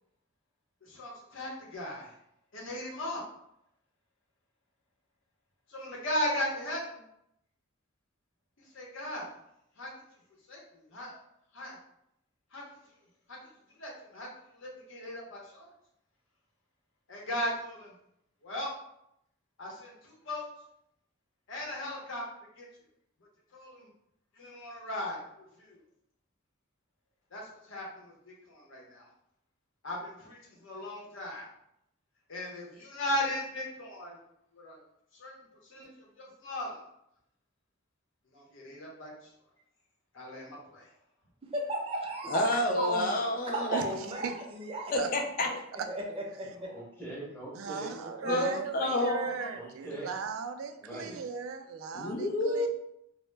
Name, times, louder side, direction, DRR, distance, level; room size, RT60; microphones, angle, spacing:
voice 1, 0.8-2.1 2.5-3.2 5.7-7.0 8.7-9.3 9.8-9.9 10.5-11.2 11.5-11.8 12.5-12.6 13.3-13.4 13.8-14.3 14.6-15.7 17.1-17.9 18.4-18.7 19.6-20.4 21.5-22.2 22.6-22.7 23.5-23.9 24.4-25.8 27.3-29.1 29.8-31.5 32.3-34.2 34.5-34.8 35.2-35.3 35.6-35.9 36.2-36.8 38.3-39.1 40.1-40.9, left 1 dB, 65° left, -3 dB, 0.7 m, -37 dB
voice 2, 41.5-42.4 42.8-43.1 43.5-44.9 45.9-46.7, right 1 dB, 30° right, -1 dB, 0.5 m, -34 dB
voice 3, 42.3-43.8 44.9-45.5 48.2-49.3 51.9-52.7, left 1 dB, 45° left, 2 dB, 0.4 m, -29 dB
voice 4, 43.7-44.4 44.7-45.1 45.8-45.9 47.5-52.7, right 5 dB, 80° right, 8 dB, 0.3 m, -38 dB
voice 5, 46.5-48.6 49.5-50.1 50.8-51.2, right 1 dB, 10° left, -5 dB, 0.7 m, -42 dB
2.1 x 2.0 x 3.1 m, 0.77 s
head